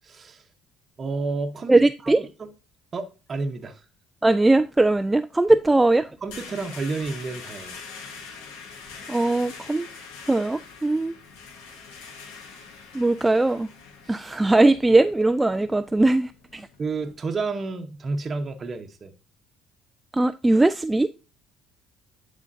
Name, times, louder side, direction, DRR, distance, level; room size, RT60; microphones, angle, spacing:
voice 1, 0.0-0.4 1.0-1.7 2.0-2.3 2.9-3.8 6.2-7.8 14.0-14.2 14.6-15.0 16.8-19.1, right 3 dB, 35° right, 0.9 m, -31 dB
voice 2, 1.7-2.2 4.2-6.1 9.1-9.9 10.3-11.1 12.9-13.7 14.1-16.7 20.1-21.1, right 2 dB, 10° right, 0.3 m, -20 dB
sound 1, 5.5-17.1, left 5 dB, 85° left, 1.3 m, -44 dB
11.0 x 3.7 x 2.7 m
supercardioid pair, 85°, 0 cm